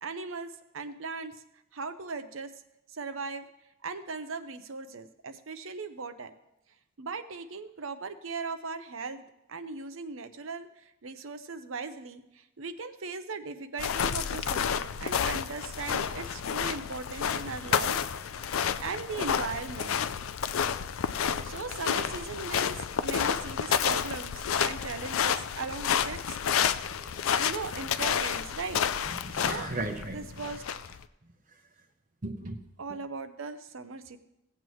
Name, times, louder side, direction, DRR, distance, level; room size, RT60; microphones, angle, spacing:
voice 1, 0.0-1.3 1.7-2.5 2.9-3.5 3.8-6.3 7.0-9.2 9.5-10.7 11.0-18.0 18.4-19.9 21.1-26.4 27.4-28.8 29.3-29.7 30.1-30.6 32.8-34.2, right 4 dB, 80° right, 9 dB, 0.8 m, -38 dB
footsteps in wet coarse sand, 13.8-31.0, left 8 dB, 85° left, 0.4 m, -30 dB
voice 2, 26.8-27.6 29.3-30.4 32.2-32.6, right 2 dB, 40° right, 3 dB, 0.8 m, -37 dB
16.5 x 8.1 x 3.1 m, 0.87 s
head